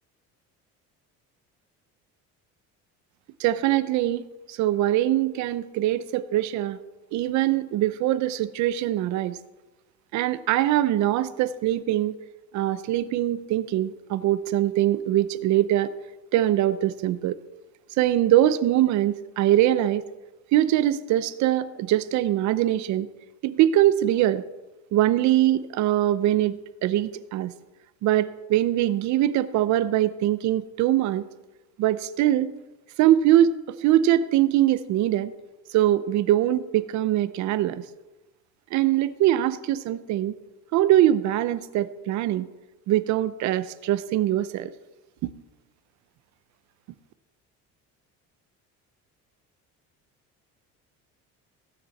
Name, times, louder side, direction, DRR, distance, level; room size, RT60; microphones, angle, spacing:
voice 1, 3.4-6.8 7.1-9.4 10.1-12.2 12.5-15.9 16.3-17.4 18.0-20.0 20.5-23.1 23.4-24.4 24.9-27.5 28.0-31.2 31.8-32.5 33.0-35.3 35.7-37.8 38.7-40.3 40.7-42.5 42.9-44.7 45.2-45.3, right 13 dB, 65° right, 14 dB, 0.7 m, -22 dB
16.5 x 9.2 x 4.2 m, 1.1 s
cardioid pair, 150°, 31 cm